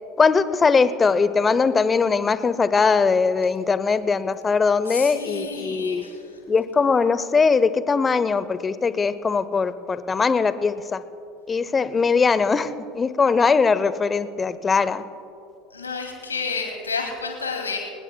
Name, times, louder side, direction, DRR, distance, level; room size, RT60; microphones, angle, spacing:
voice 1, 0.2-6.0 6.5-11.0 11.5-15.0, left 5 dB, 25° left, 15 dB, 0.7 m, -21 dB
voice 2, 4.8-6.4 15.7-17.8, left 4 dB, 85° left, 2 dB, 2.6 m, -30 dB
24.5 x 20.0 x 2.3 m, 2.6 s
figure-of-eight pair, 75°, 0 cm